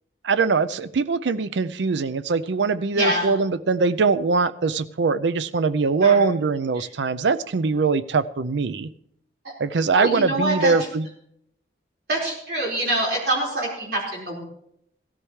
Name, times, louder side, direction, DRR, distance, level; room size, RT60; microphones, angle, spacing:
voice 1, 0.2-8.9 9.6-11.1, right 4 dB, 85° right, 15 dB, 0.5 m, -22 dB
voice 2, 2.9-3.3 6.0-6.2 6.8-6.9 9.9-10.7 12.1-14.4, right 1 dB, 65° right, -3 dB, 4.7 m, -25 dB
16.5 x 13.5 x 3.2 m, 0.74 s
head